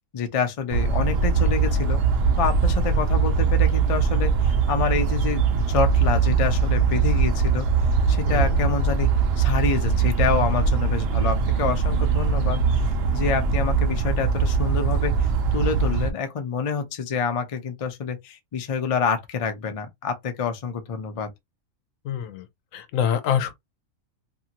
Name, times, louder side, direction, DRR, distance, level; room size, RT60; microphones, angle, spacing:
voice 1, 0.1-2.0 2.4-7.7 8.1-9.1 9.4-21.3, left 6 dB, 50° left, 0.4 m, -27 dB
sound 1, 0.7-16.1, right 5 dB, 65° right, 0.7 m, -21 dB
voice 2, 8.3-8.6 22.0-22.5 22.7-23.5, left 9 dB, 85° left, 1.0 m, -25 dB
2.7 x 2.5 x 2.8 m
omnidirectional pair, 1.4 m